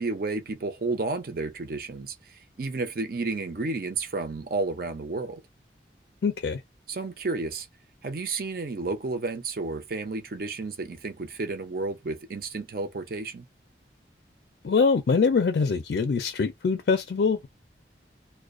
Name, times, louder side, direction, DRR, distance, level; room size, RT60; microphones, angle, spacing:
voice 1, 0.0-5.4 6.9-7.7 8.0-13.5, right 3 dB, 55° right, 0.5 m, -31 dB
voice 2, 6.2-6.6 14.6-17.5, left 5 dB, 65° left, 0.4 m, -23 dB
2.3 x 2.2 x 2.4 m
head